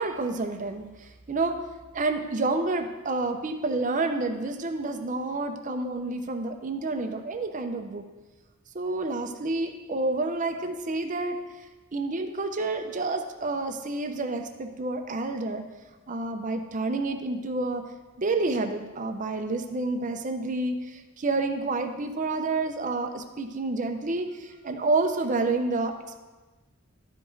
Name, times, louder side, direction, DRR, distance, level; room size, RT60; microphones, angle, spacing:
voice 1, 0.0-1.6 1.9-8.0 8.7-11.4 11.9-15.6 16.1-17.8 18.2-25.9, right 3 dB, 35° right, 6 dB, 0.6 m, -29 dB
12.0 x 4.9 x 3.9 m, 1.2 s
head